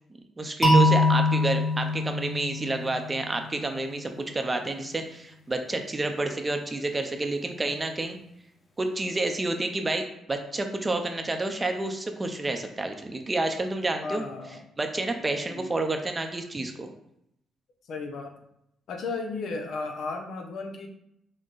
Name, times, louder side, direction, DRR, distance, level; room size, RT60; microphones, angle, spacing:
voice 1, 0.4-8.2 8.8-14.2 14.8-16.9, right 2 dB, 20° right, 5 dB, 0.6 m, -29 dB
sound 1, 0.6-3.5, left 1 dB, 30° left, 1.3 m, -23 dB
voice 2, 14.0-14.6 15.5-15.7 17.9-18.3 18.9-20.9, left 3 dB, 70° left, 4 dB, 0.7 m, -34 dB
6.3 x 2.2 x 3.9 m, 0.77 s
cardioid pair, 90°, 0 cm